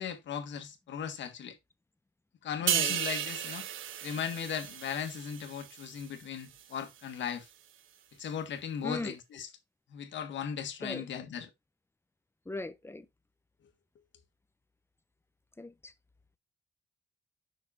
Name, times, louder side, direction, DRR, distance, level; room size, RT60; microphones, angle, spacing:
voice 1, 0.0-1.6 2.4-3.7 4.0-7.5 8.2-9.5 9.9-11.5, left 8 dB, 70° left, 1.7 m, -37 dB
voice 2, 2.6-3.0 8.8-9.2 10.8-11.0 12.5-13.1 15.6-15.9, left 2 dB, 10° left, 0.9 m, -38 dB
sound 1, 2.7-6.2 6.6-6.8, right 11 dB, 85° right, 1.0 m, -34 dB
6.0 x 4.8 x 4.1 m
cardioid pair, 90°, 20 cm